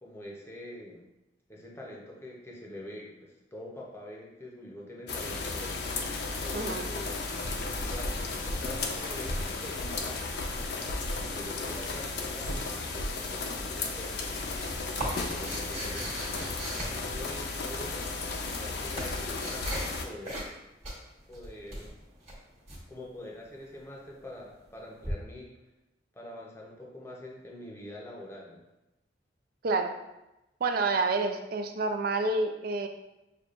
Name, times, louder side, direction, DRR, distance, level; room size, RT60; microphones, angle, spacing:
voice 1, 0.0-1.0 1.5-5.7 6.4-7.4 7.9-10.2 11.1-14.5 15.1-16.5 16.7-18.0 18.4-20.4 21.3-22.0 22.9-25.5 26.1-28.6, left 1 dB, 15° left, -3 dB, 0.7 m, -45 dB
sound 1, 5.1-20.1, left 3 dB, 60° left, 0.5 m, -34 dB
voice 2, 6.5-6.9 29.6-30.0 30.6-32.9, right 3 dB, 55° right, 6 dB, 0.4 m, -28 dB
sound 2, 8.9-9.9 11.5-11.8 13.5-13.8, right 2 dB, 75° right, 1.0 m, -51 dB
sound 3, 13.9-17.7 18.4-20.0 20.2-20.6 20.8-22.8 25.0-25.1, right 1 dB, 35° right, 1.4 m, -38 dB
6.6 x 2.3 x 2.5 m, 0.95 s
head